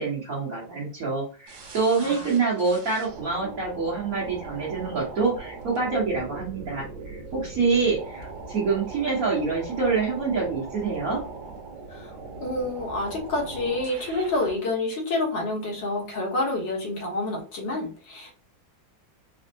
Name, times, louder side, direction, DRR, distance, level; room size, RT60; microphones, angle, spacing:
voice 1, 0.0-11.2, right 4 dB, 50° right, -6 dB, 1.5 m, -26 dB
sound 1, 1.5-14.6, right 3 dB, 85° right, 1.7 m, -40 dB
voice 2, 11.9-18.3, left 2 dB, 75° left, -1 dB, 1.8 m, -28 dB
4.3 x 2.0 x 2.7 m, 0.35 s
omnidirectional pair, 2.0 m